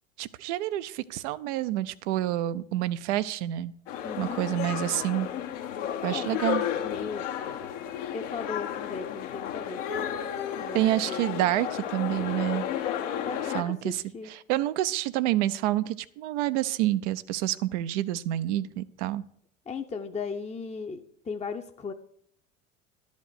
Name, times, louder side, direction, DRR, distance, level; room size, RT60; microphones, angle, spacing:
voice 1, 0.2-3.7 4.2-5.3 6.0-6.6 10.7-12.7 13.5-19.2, right 14 dB, 65° right, 12 dB, 0.6 m, -28 dB
sound 1, 3.9-13.6, left 9 dB, 70° left, 1.2 m, -33 dB
voice 2, 4.0-4.5 6.1-6.4 6.7-7.3 8.1-9.8 10.6-11.2 13.2-14.3 19.7-21.9, left 5 dB, 15° left, 5 dB, 0.7 m, -37 dB
11.5 x 5.2 x 8.2 m, 0.65 s
figure-of-eight pair, 65°, 38 cm